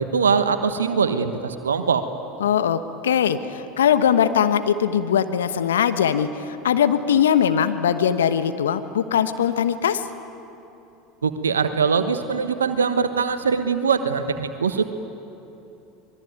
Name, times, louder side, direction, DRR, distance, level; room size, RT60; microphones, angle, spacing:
voice 1, 0.0-2.0 11.2-14.8, right 5 dB, 80° right, 9 dB, 1.2 m, -22 dB
voice 2, 2.4-10.0, left 8 dB, 75° left, 10 dB, 1.1 m, -21 dB
25.0 x 21.5 x 9.4 m, 2.9 s
figure-of-eight pair, 75°, 0 cm